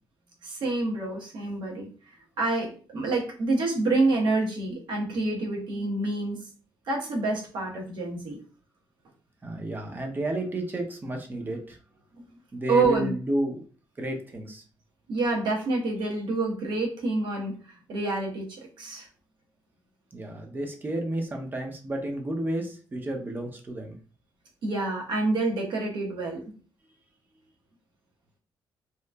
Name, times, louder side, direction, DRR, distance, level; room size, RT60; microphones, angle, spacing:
voice 1, 0.4-1.9 2.4-6.4 6.9-8.4 12.7-13.1 15.1-17.5 17.9-18.5 18.8-19.1 24.6-26.4, right 3 dB, 70° right, -1 dB, 1.0 m, -27 dB
voice 2, 9.4-11.8 12.5-13.6 14.0-14.6 20.1-23.9, right 1 dB, 25° right, 3 dB, 0.6 m, -31 dB
2.9 x 2.4 x 2.2 m, 0.40 s
cardioid pair, 105°, 8 cm